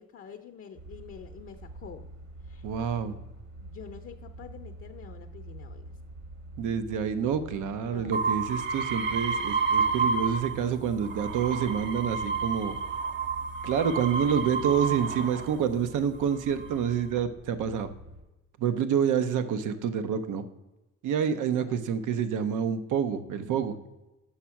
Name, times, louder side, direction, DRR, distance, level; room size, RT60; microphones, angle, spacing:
voice 1, 0.0-2.1 2.5-2.6 3.6-5.8 7.8-8.2 21.3-21.8, left 7 dB, 50° left, 6 dB, 0.6 m, -47 dB
sound 1, 0.8-18.2, right 1 dB, 65° right, 1.8 m, -46 dB
voice 2, 2.6-3.2 6.6-12.8 13.6-17.9 18.6-20.4 21.0-23.8, right 7 dB, 80° right, 11 dB, 0.7 m, -28 dB
sound 2, 8.1-10.7 11.0-15.6 16.3-16.9, right 5 dB, 40° right, 0.5 m, -30 dB
6.3 x 5.7 x 5.7 m, 1.0 s
cardioid pair, 90°, 30 cm